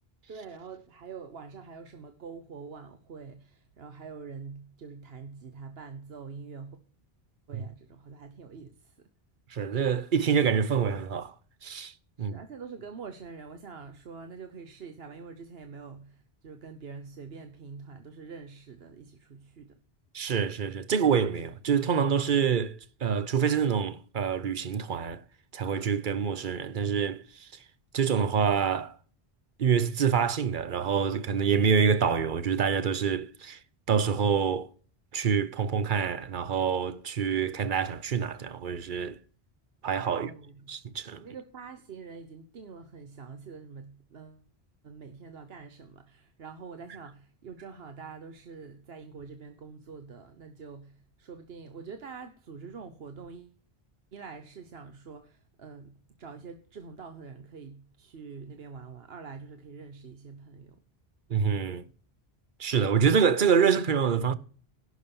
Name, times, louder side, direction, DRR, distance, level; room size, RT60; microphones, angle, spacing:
voice 1, 0.3-6.8 7.5-9.1 12.2-19.8 40.1-40.7 41.2-44.4 44.8-53.6 54.1-60.8, right 5 dB, 70° right, 1.2 m, -45 dB
voice 2, 9.5-11.3 11.6-12.4 20.1-25.2 25.5-27.5 27.9-29.0 29.6-33.6 33.9-34.7 35.1-39.2 39.8-40.3 40.7-41.3 61.3-61.8 62.6-64.3, right 7 dB, 55° right, 0.9 m, -26 dB
11.0 x 6.1 x 7.0 m
omnidirectional pair, 1.1 m